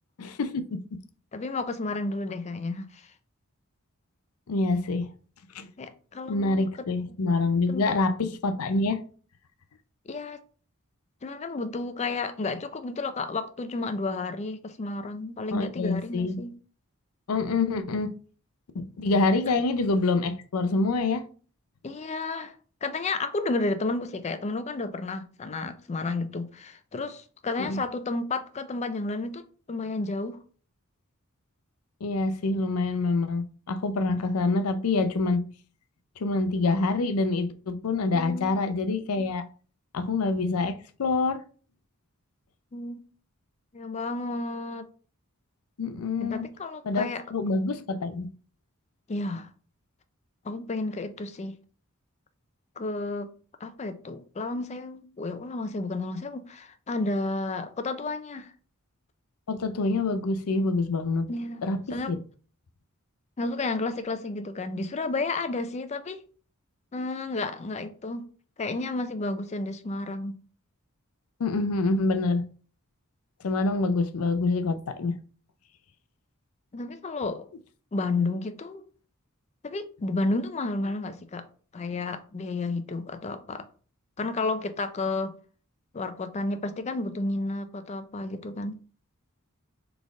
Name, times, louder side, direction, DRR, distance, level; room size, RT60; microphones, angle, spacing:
voice 1, 0.2-0.6 4.5-5.1 5.5-5.7 6.3-9.0 15.5-16.4 17.3-18.1 18.7-21.3 27.6-27.8 32.0-35.4 36.2-39.4 39.9-41.4 45.8-46.5 46.8-48.3 59.5-61.3 61.6-62.2 71.4-72.4 73.4-75.2, left 3 dB, 85° left, 0.5 m, -26 dB
voice 2, 1.3-3.1 5.8-6.7 7.7-7.9 10.1-10.4 11.2-16.5 21.8-22.5 22.8-29.4 29.7-30.4 38.1-38.6 42.7-43.0 43.7-44.9 46.2-47.2 49.1-49.5 50.4-51.6 52.8-53.3 53.6-58.5 61.3-61.6 61.9-62.1 63.4-66.2 66.9-68.2 68.6-70.4 76.7-77.5 77.9-78.8 79.6-81.4 81.7-83.7 84.2-85.3 85.9-88.8, left 3 dB, 30° left, 0.4 m, -31 dB
4.1 x 3.4 x 3.5 m
head